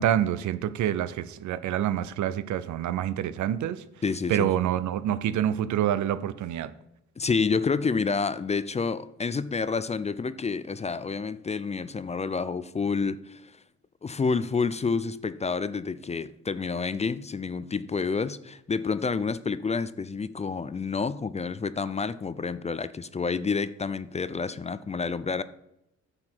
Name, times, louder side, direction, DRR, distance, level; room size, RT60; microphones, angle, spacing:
voice 1, 0.0-3.8 4.3-6.7, right 11 dB, 75° right, 14 dB, 0.6 m, -27 dB
voice 2, 4.0-4.5 7.2-13.5 14.0-25.4, left 5 dB, 20° left, 15 dB, 0.4 m, -29 dB
9.6 x 6.6 x 4.5 m, 0.82 s
cardioid pair, 90°, 30 cm